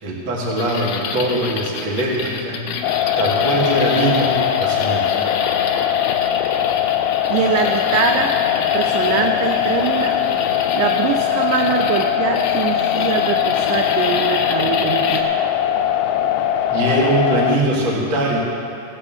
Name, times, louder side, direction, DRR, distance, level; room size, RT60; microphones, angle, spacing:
voice 1, 0.0-5.2 16.7-18.4, right 1 dB, 40° right, -4 dB, 2.1 m, -21 dB
sound 1, 0.6-15.2, left 5 dB, 75° left, 2.0 m, -28 dB
sound 2, 2.8-17.6, left 10 dB, 90° left, 2.4 m, -20 dB
voice 2, 7.3-8.3 8.7-10.2 10.7-15.5, right 8 dB, 80° right, 4 dB, 1.9 m, -23 dB
15.5 x 6.2 x 7.1 m, 2.6 s
omnidirectional pair, 4.3 m